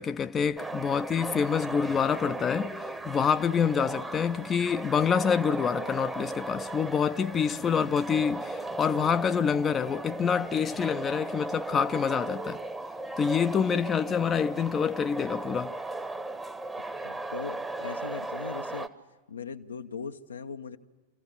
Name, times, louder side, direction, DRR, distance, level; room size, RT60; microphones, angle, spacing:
voice 1, 0.0-12.6 13.2-15.7, left 7 dB, 20° left, 0.6 m, -27 dB
sound 1, 0.6-18.9, right 2 dB, 10° right, 1.0 m, -37 dB
voice 2, 17.0-18.9 19.3-20.8, left 6 dB, 75° left, 0.9 m, -39 dB
27.5 x 15.0 x 8.7 m
figure-of-eight pair, 90°, 0 cm